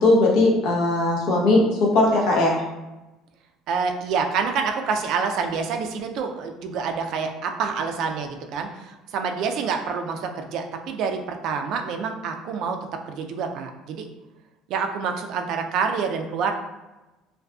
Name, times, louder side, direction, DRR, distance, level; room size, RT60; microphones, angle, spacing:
voice 1, 0.0-2.6, left 2 dB, 75° left, -2 dB, 0.8 m, -19 dB
voice 2, 3.7-12.8 13.1-14.1 14.7-16.5, right 5 dB, 65° right, 5 dB, 0.3 m, -27 dB
2.5 x 2.4 x 2.3 m, 1.0 s
supercardioid pair, 100°, 0 cm